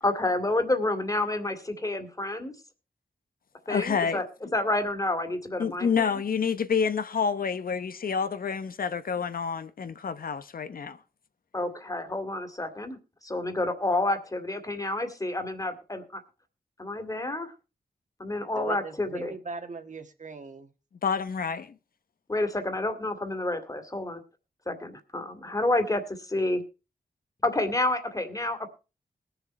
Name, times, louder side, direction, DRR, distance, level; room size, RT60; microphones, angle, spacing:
voice 1, 0.0-2.6 3.7-4.3 4.5-6.2 11.5-16.2 16.8-17.5 18.2-19.3 22.3-24.2 24.7-26.6 27.4-28.7, left 2 dB, 20° left, 2.3 m, -29 dB
voice 2, 3.7-4.2 5.6-11.0 21.0-21.7, left 6 dB, 75° left, 1.0 m, -28 dB
voice 3, 18.6-20.7, right 4 dB, 55° right, 1.9 m, -39 dB
20.5 x 6.9 x 4.4 m
wide cardioid pair, 90°, 15 cm